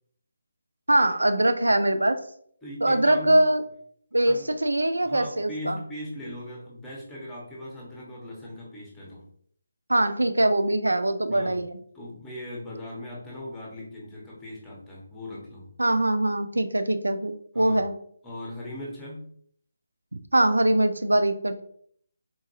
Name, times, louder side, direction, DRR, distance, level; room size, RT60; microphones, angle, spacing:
voice 1, 0.9-2.2 2.8-3.6 4.1-5.8 9.9-11.8 15.8-17.9 20.1-21.6, right 1 dB, 90° right, 9 dB, 0.3 m, -22 dB
voice 2, 2.6-3.4 4.3-4.5 5.0-9.2 11.3-11.7 11.9-15.7 17.5-17.8 18.2-19.3, left 1 dB, 10° left, -5 dB, 1.0 m, -39 dB
3.8 x 2.5 x 2.7 m, 0.62 s
figure-of-eight pair, 155°, 0 cm